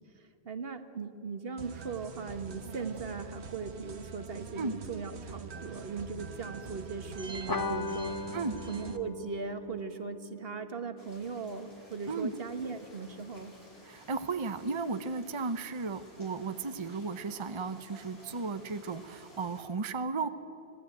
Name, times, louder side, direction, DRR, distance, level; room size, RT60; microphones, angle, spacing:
voice 1, 0.4-8.1 8.7-13.5, right 5 dB, 65° right, 9 dB, 1.5 m, -39 dB
sound 1, 1.6-9.0, right 5 dB, 85° right, 1.5 m, -44 dB
sound 2, 7.5-12.4, left 2 dB, 25° left, 0.6 m, -39 dB
sound 3, 11.0-19.6, equal, 70° left, 5.4 m, -55 dB
voice 2, 13.8-20.3, right 4 dB, 30° right, 10 dB, 0.8 m, -34 dB
25.0 x 17.5 x 9.2 m, 2.8 s
omnidirectional pair, 1.1 m